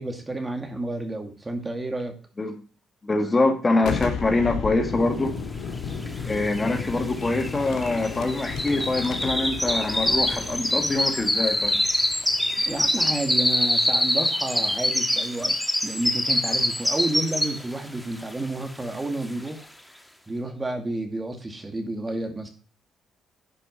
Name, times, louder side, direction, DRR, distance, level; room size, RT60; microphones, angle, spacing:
voice 1, 0.0-2.2 12.6-19.7 20.3-22.5, right 2 dB, 20° right, 5 dB, 2.3 m, -31 dB
voice 2, 3.0-5.3 6.3-11.8, left 2 dB, 25° left, 5 dB, 2.0 m, -24 dB
Boom, 3.8-13.4, left 6 dB, 75° left, 2.1 m, -34 dB
sound 1, 6.1-6.2 6.3-17.8 18.2-18.5 18.9-19.0, left 1 dB, 5° left, 1.4 m, -25 dB
11.0 x 5.4 x 5.3 m, 0.37 s
cardioid pair, 90°, 0 cm